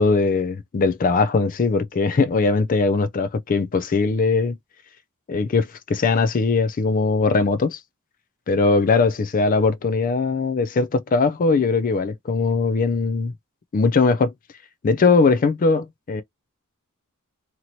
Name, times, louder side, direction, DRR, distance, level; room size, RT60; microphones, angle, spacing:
voice 1, 0.0-4.6 5.3-7.8 8.5-13.3 13.7-14.3 14.8-16.2, left 4 dB, 40° left, 0.4 m, -20 dB
2.9 x 2.9 x 2.6 m
head